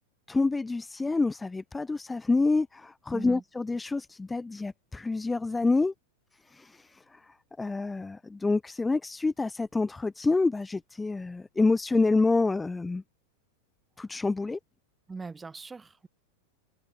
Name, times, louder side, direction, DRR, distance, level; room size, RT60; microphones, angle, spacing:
voice 1, 0.3-5.9 6.5-13.0 14.0-14.6, left 3 dB, 10° left, 2.5 m, -27 dB
voice 2, 3.1-3.4 15.1-16.1, right 4 dB, 10° right, 5.7 m, -40 dB
figure-of-eight pair, 90°, 0 cm